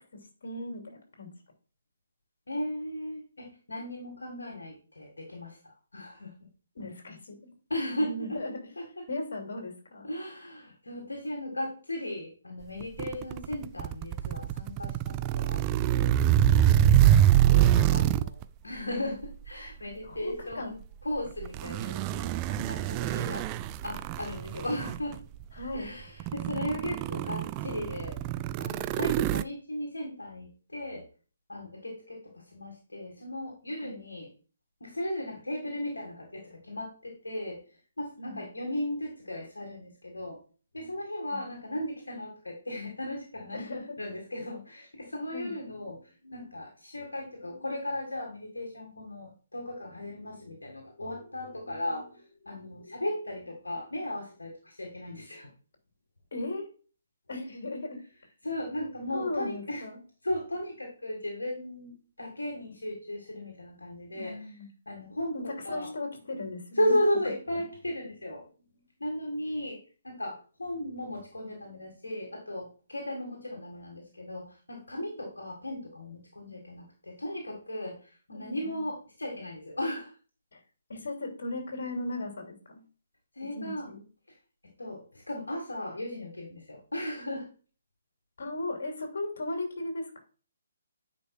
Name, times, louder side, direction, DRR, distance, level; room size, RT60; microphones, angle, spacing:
voice 1, 0.4-1.3 6.7-7.5 8.0-8.7 9.1-10.1 16.9-17.1 20.0-20.8 23.0-23.4 25.5-25.9 33.8-34.0 38.2-38.4 41.3-41.4 43.5-44.0 45.3-45.5 56.3-56.6 57.3-58.0 59.1-60.0 64.1-64.7 65.3-67.0 67.5-67.6 76.4-76.6 78.3-78.9 80.5-80.6 80.9-82.8 83.5-84.0 88.4-90.2, left 2 dB, 60° left, 2 dB, 2.8 m, -37 dB
voice 2, 2.5-5.6 5.9-6.5 7.7-8.4 8.8-9.1 10.0-15.6 15.9-16.2 17.0-18.4 18.6-20.8 21.0-23.5 23.8-25.2 25.7-28.2 28.6-31.1 31.5-34.3 34.8-37.6 38.0-40.4 40.7-43.6 44.0-55.5 58.4-59.8 60.2-64.4 64.9-65.9 66.7-68.4 69.0-69.8 70.0-80.1 83.4-83.9 84.3-84.4 84.8-87.5, left 1 dB, 75° left, 0 dB, 2.0 m, -36 dB
sound 1, 12.8-18.4 19.2-19.5 21.4-25.2 25.8-25.9 26.2-29.4, right 11 dB, 25° right, 0.3 m, -25 dB
9.5 x 5.2 x 2.4 m, 0.38 s
figure-of-eight pair, 135°, 0 cm